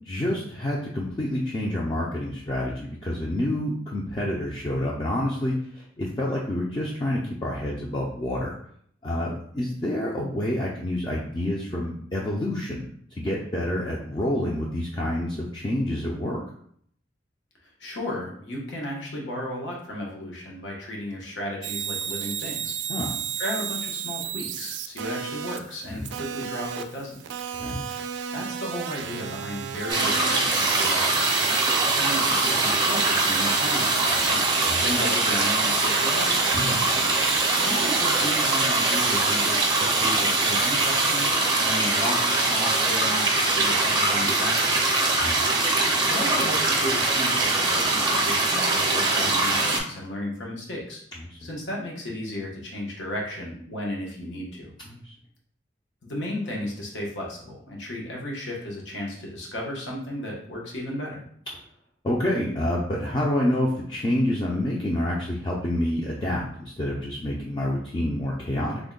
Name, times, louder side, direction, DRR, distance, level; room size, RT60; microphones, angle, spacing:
voice 1, 0.1-8.5 9.0-12.8 13.2-16.4 22.9-23.1 25.9-26.1 27.6-27.8 34.7-34.8 36.5-36.8 45.2-45.4 51.3-51.4 54.9-55.1 62.0-68.8, left 1 dB, 25° left, -4 dB, 0.4 m, -28 dB
voice 2, 17.8-22.7 23.4-27.2 28.3-31.3 31.8-34.4 34.8-36.5 37.5-44.9 46.1-51.0 51.4-54.7 56.0-61.2, left 1 dB, 85° left, -2 dB, 0.9 m, -34 dB
sound 1, 21.6-41.3, right 9 dB, 75° right, 0.3 m, -33 dB
sound 2, 29.9-49.8, right 2 dB, 25° right, 0.6 m, -23 dB
3.4 x 2.1 x 3.7 m, 0.64 s
head